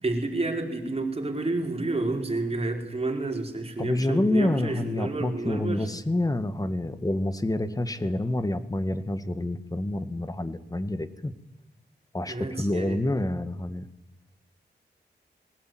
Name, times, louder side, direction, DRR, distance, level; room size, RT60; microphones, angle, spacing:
voice 1, 0.0-5.9 12.3-13.0, right 2 dB, 35° right, 2 dB, 4.8 m, -30 dB
voice 2, 3.8-11.3 12.1-13.9, left 1 dB, 20° left, 11 dB, 1.8 m, -28 dB
21.0 x 19.5 x 9.4 m, 0.98 s
wide cardioid pair, 75°, 18 cm